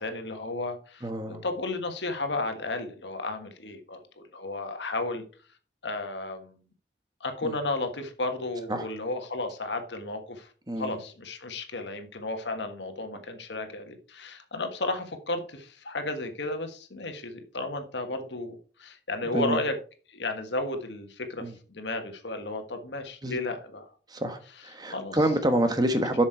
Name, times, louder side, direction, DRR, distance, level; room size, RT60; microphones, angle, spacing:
voice 1, 0.0-5.2 5.8-6.6 7.2-10.5 10.8-19.7 20.1-23.9 24.9-25.2, left 2 dB, 85° left, 1.4 m, -33 dB
voice 2, 1.0-1.4 7.4-7.5 8.7-8.9 10.7-11.0 19.3-19.6 21.4-21.5 23.2-23.4 24.1-26.2, right 1 dB, 25° right, 1.2 m, -27 dB
7.5 x 6.2 x 4.6 m
head